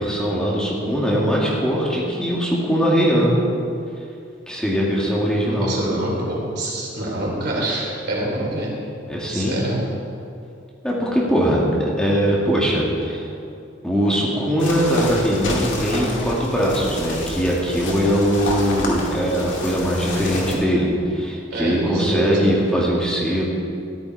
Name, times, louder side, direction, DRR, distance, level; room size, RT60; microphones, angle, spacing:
voice 1, 0.0-3.3 4.5-5.8 9.1-9.6 10.8-13.2 13.8-23.4, equal, 5° left, -5 dB, 2.0 m, -21 dB
voice 2, 5.4-8.7 9.3-9.8 21.5-22.5, right 1 dB, 60° right, -3 dB, 3.5 m, -26 dB
sound 1, 14.6-20.6, left 1 dB, 80° left, 2.4 m, -28 dB
14.0 x 10.5 x 4.7 m, 2.5 s
head